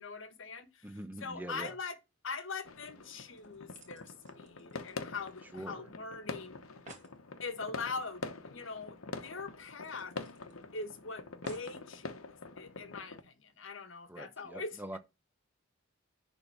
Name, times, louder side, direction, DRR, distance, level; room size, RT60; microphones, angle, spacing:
voice 1, 0.0-2.0 2.2-6.6 7.4-10.1 10.7-15.0, left 4 dB, 70° left, 1.3 m, -42 dB
voice 2, 0.8-1.7 5.5-5.9 14.1-15.0, right 1 dB, 10° right, 0.8 m, -44 dB
sound 1, 2.6-13.2, left 3 dB, 85° left, 1.0 m, -45 dB
sound 2, 3.0-5.7 5.9-6.0 6.4-6.5 6.6-7.2 8.7-8.8 9.1-9.2 9.8-10.8 11.4-11.8 12.6-12.7, right 3 dB, 35° right, 2.1 m, -57 dB
10.5 x 3.7 x 5.5 m
head